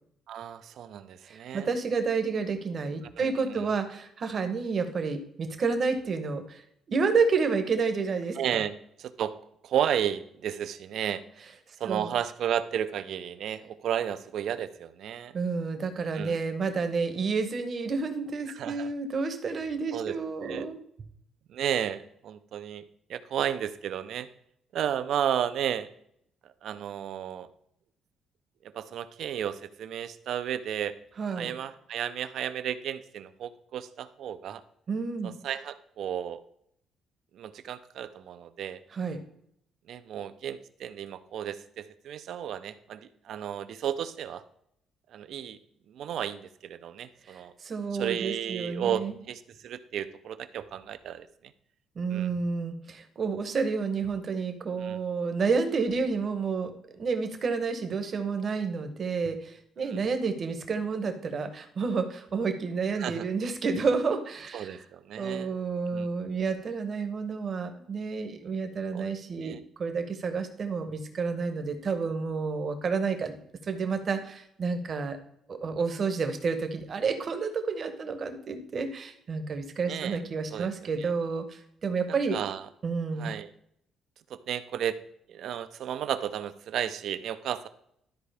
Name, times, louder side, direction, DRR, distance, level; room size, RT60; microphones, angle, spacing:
voice 1, 0.3-1.7 3.2-3.7 8.4-9.3 9.6-11.2 11.8-15.3 16.1-16.4 18.5-18.9 19.9-20.1 20.4-20.7 21.5-22.8 23.1-24.3 24.7-25.9 26.4-27.5 28.7-31.0 31.4-34.6 35.2-36.4 37.3-38.8 39.9-44.4 45.1-45.6 45.9-47.5 47.9-51.3 52.1-52.3 54.8-55.0 59.8-60.1 63.0-63.3 64.5-65.5 65.9-66.1 68.9-69.1 69.4-69.6 79.9-80.2 80.5-81.1 82.3-82.6 83.2-83.5 84.3-85.0 85.3-87.7, right 9 dB, 55° right, 12 dB, 0.5 m, -33 dB
voice 2, 1.2-6.6 6.9-8.6 11.9-12.1 15.3-20.8 31.2-31.5 34.9-35.3 38.9-39.2 47.3-49.1 52.0-56.7 57.0-64.8 65.2-73.3 73.6-75.2 75.5-82.4 82.8-83.3, right 4 dB, 30° right, 7 dB, 0.9 m, -30 dB
12.5 x 4.7 x 3.4 m, 0.72 s
cardioid pair, 175°, 0 cm